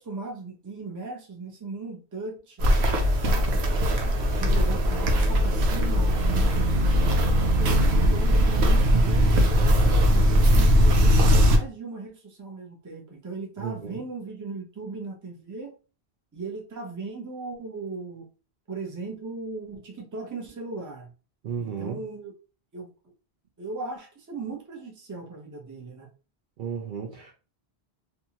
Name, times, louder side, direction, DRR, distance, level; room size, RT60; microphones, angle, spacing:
voice 1, 0.0-2.7 3.2-3.8 4.3-9.4 10.1-15.7 16.3-18.3 18.7-21.1 21.6-22.3 22.7-23.1 23.6-26.1, right 3 dB, 20° right, 0.6 m, -38 dB
Walk footsteps, 2.6-11.6, equal, 90° right, 0.9 m, -20 dB
voice 2, 13.6-13.9 21.4-22.0 26.6-27.3, right 7 dB, 60° right, 0.6 m, -33 dB
2.7 x 2.3 x 2.8 m
omnidirectional pair, 1.1 m